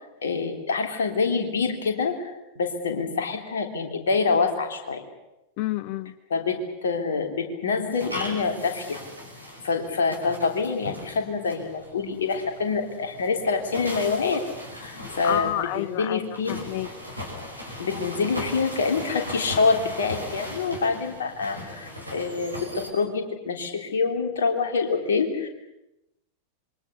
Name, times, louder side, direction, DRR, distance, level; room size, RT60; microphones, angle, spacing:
voice 1, 0.2-2.1 2.5-5.0 6.3-9.0 9.6-14.4 14.7-16.6 17.8-25.5, left 4 dB, 65° left, 4 dB, 3.4 m, -26 dB
voice 2, 5.6-6.1 15.2-16.9, left 14 dB, 45° left, 17 dB, 0.9 m, -29 dB
sound 1, 7.9-22.9, left 1 dB, 85° right, 5.3 m, -38 dB
27.0 x 23.5 x 7.0 m, 0.91 s
figure-of-eight pair, 90°, 0 cm